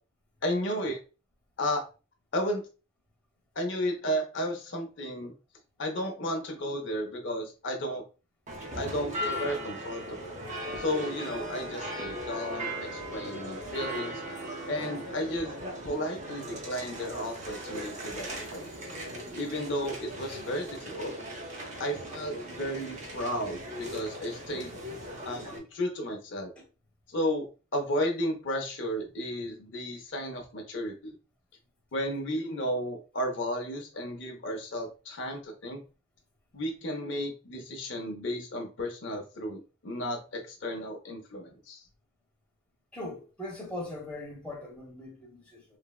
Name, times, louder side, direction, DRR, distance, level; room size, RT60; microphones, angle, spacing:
voice 1, 0.4-1.0 1.6-1.8 2.3-2.6 3.6-5.3 5.8-8.0 8.8-10.4 10.8-14.2 14.7-18.7 19.4-21.1 21.8-24.8 25.2-26.5 27.1-27.4 27.7-31.1 31.9-35.8 36.5-41.8, equal, 65° left, 0.6 m, -33 dB
sound 1, 8.5-25.6, equal, 40° right, 0.6 m, -38 dB
voice 2, 42.9-45.6, left 1 dB, 5° left, 0.9 m, -40 dB
3.2 x 2.0 x 2.3 m
head